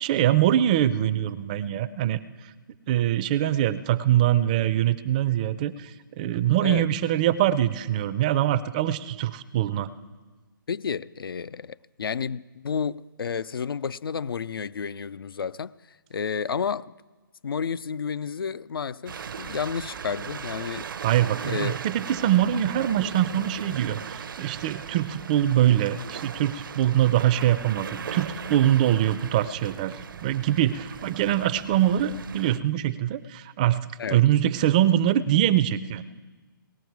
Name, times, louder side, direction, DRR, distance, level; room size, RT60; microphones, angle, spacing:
voice 1, 0.0-2.2 2.9-9.9 21.0-30.0 30.2-36.0, right 12 dB, 20° right, 0.4 m, -23 dB
voice 2, 10.7-15.7 16.1-16.9 17.4-20.9 21.5-21.8 34.0-34.2, left 6 dB, 90° left, 0.4 m, -31 dB
sound 1, 19.1-32.6, right 7 dB, 70° right, 0.6 m, -38 dB
19.0 x 13.5 x 4.6 m
hypercardioid pair, 155°, 12 cm